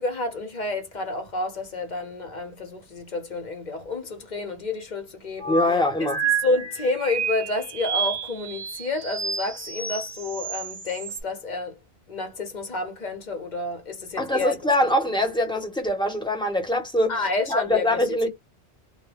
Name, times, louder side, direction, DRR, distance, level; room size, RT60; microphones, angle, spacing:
voice 1, 0.0-5.6 6.0-6.1 6.4-11.8 12.1-14.6 17.1-18.3, left 2 dB, 45° left, 0.8 m, -29 dB
sound 1, 5.4-11.2, right 6 dB, 55° right, 0.8 m, -30 dB
voice 2, 5.5-6.2 14.2-17.2 17.5-18.3, left 1 dB, 5° left, 0.8 m, -23 dB
2.2 x 2.1 x 3.2 m
omnidirectional pair, 1.1 m